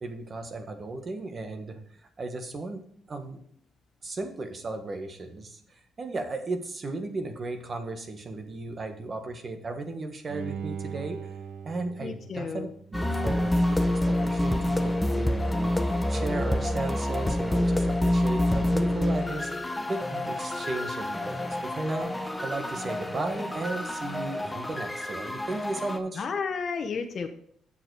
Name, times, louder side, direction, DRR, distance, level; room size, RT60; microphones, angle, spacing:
voice 1, 0.0-1.8 2.2-2.8 3.1-3.4 4.0-11.2 11.6-13.9 14.2-15.7 16.1-19.5 19.9-22.1 22.4-26.3, right 2 dB, 40° right, 6 dB, 1.5 m, -35 dB
Bowed string instrument, 10.3-13.4 13.8-13.9, right 7 dB, 80° right, 0.9 m, -40 dB
voice 2, 12.0-12.7 26.2-27.3, left 5 dB, 50° left, 5 dB, 0.9 m, -32 dB
sound 1, 12.9-26.0, left 1 dB, 10° left, 1.0 m, -27 dB
7.8 x 7.1 x 4.8 m, 0.63 s
cardioid pair, 90°, 0 cm